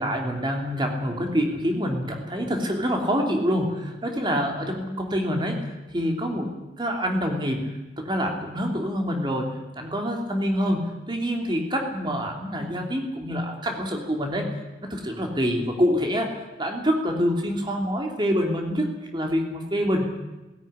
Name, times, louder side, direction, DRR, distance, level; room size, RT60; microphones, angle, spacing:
voice 1, 0.0-9.5 9.7-14.6 14.9-20.1, equal, 25° right, 2 dB, 3.1 m, -26 dB
18.5 x 16.0 x 10.0 m, 1.1 s
head